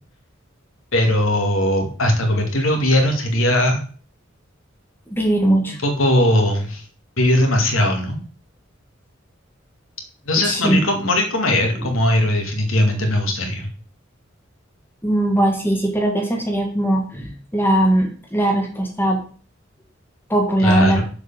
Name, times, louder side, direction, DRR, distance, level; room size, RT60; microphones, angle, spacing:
voice 1, 0.9-3.8 5.7-6.8 7.2-8.2 10.3-13.7 20.6-21.0, left 1 dB, 85° left, 3 dB, 2.2 m, -19 dB
voice 2, 5.1-5.8 10.4-10.8 15.0-19.2 20.3-21.0, right 1 dB, 10° left, 2 dB, 1.5 m, -19 dB
7.0 x 4.8 x 7.0 m, 0.43 s
head